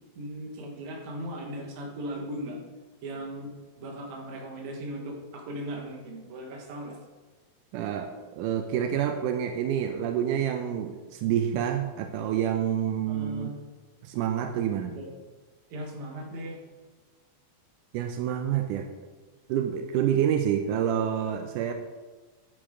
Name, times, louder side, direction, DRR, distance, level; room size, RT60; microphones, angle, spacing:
voice 1, 0.2-2.6 3.0-3.5 3.8-7.0 13.1-13.6 14.9-15.1 15.7-16.6, right 1 dB, 60° right, 1 dB, 2.4 m, -38 dB
voice 2, 7.7-13.5 14.0-15.0 17.9-18.9 19.5-21.7, right 9 dB, 85° right, 6 dB, 1.9 m, -28 dB
10.5 x 8.7 x 3.7 m, 1.3 s
omnidirectional pair, 4.2 m